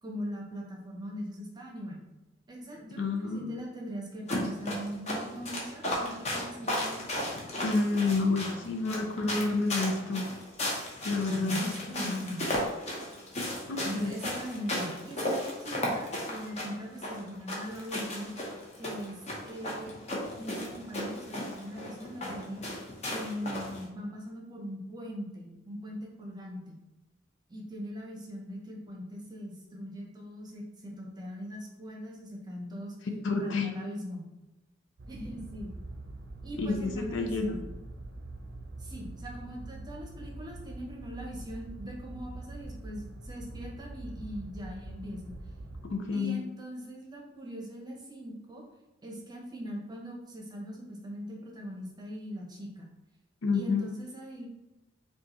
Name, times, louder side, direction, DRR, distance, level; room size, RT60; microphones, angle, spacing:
voice 1, 0.0-2.1 2.5-7.0 11.3-12.5 13.8-18.3 18.8-20.0 20.3-22.6 23.1-26.8 27.5-32.9 33.3-34.3 35.1-35.7 36.4-37.6 38.8-45.4 46.1-48.6 49.0-52.9 53.5-54.5, equal, 20° right, -1 dB, 0.7 m, -41 dB
voice 2, 3.0-3.6 7.6-10.2 11.0-11.7 12.0-12.3 13.7-14.1 33.2-33.8 36.6-37.6 45.8-46.4 53.4-53.9, left 3 dB, 70° left, 4 dB, 0.5 m, -29 dB
sound 1, 4.3-23.8, left 1 dB, 35° left, 0.8 m, -35 dB
sound 2, 35.0-45.9, right 2 dB, 60° right, 0.6 m, -44 dB
5.2 x 2.3 x 2.9 m, 0.97 s
head